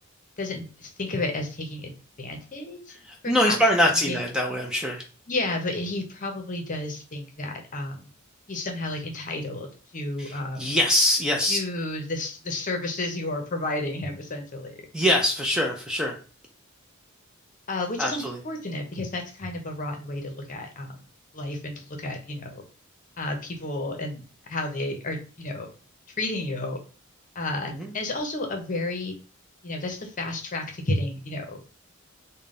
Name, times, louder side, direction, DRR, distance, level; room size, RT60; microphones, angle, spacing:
voice 1, 0.4-2.9 3.2-3.6 4.1-4.2 5.3-8.1 8.5-10.8 11.4-14.8 17.7-21.0 21.3-22.6 23.2-25.7 26.2-26.8 27.3-29.1 29.6-31.6, left 2 dB, 40° left, 3 dB, 0.8 m, -32 dB
voice 2, 3.0-5.0 10.2-11.6 14.9-16.2 18.0-18.4 27.7-27.9, left 1 dB, 5° right, 1 dB, 0.5 m, -23 dB
3.6 x 2.2 x 3.7 m, 0.37 s
head